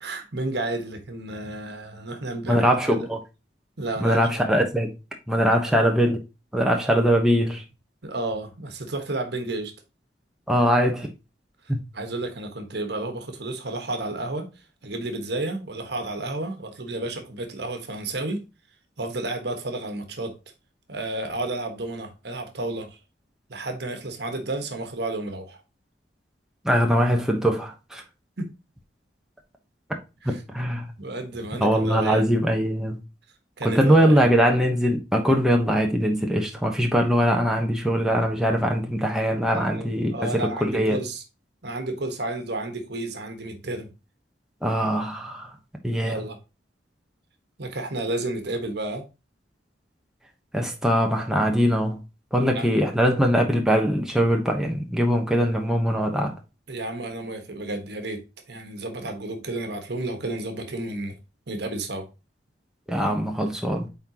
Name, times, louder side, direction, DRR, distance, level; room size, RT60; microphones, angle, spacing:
voice 1, 0.0-2.7 3.8-4.3 5.5-5.6 8.0-9.7 11.9-14.5 14.8-18.4 19.0-20.4 20.9-23.0 23.5-25.6 28.4-28.5 30.2-30.4 31.0-32.3 33.6-34.3 39.5-41.2 41.6-43.9 46.0-46.4 47.6-49.0 52.5-52.7 56.7-58.2 58.5-61.1 61.5-62.1, right 2 dB, 65° right, 1.4 m, -31 dB
voice 2, 2.4-3.2 4.0-4.9 5.3-6.2 6.5-7.6 10.5-11.1 11.7-11.8 26.6-28.0 30.2-30.9 31.6-33.0 33.6-41.0 44.6-45.5 45.8-46.2 50.5-52.0 52.3-56.3 62.9-63.9, equal, 5° right, 1.0 m, -22 dB
8.7 x 3.9 x 2.9 m
head